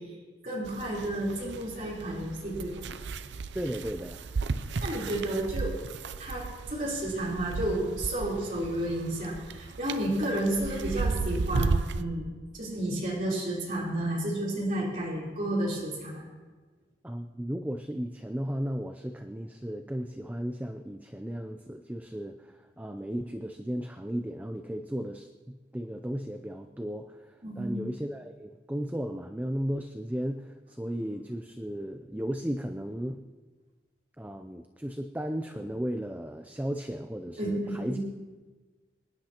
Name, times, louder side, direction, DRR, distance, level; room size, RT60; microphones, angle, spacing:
voice 1, 0.4-2.8 4.8-5.8 6.2-12.3 12.5-16.2 27.4-27.8 37.4-38.0, right 1 dB, 45° right, -6 dB, 3.7 m, -31 dB
sound 1, 0.7-12.0, right 4 dB, 80° right, 0.5 m, -34 dB
voice 2, 3.5-4.2 17.0-33.2 34.2-38.0, equal, 10° right, 6 dB, 0.5 m, -35 dB
26.0 x 10.5 x 2.9 m, 1.3 s
head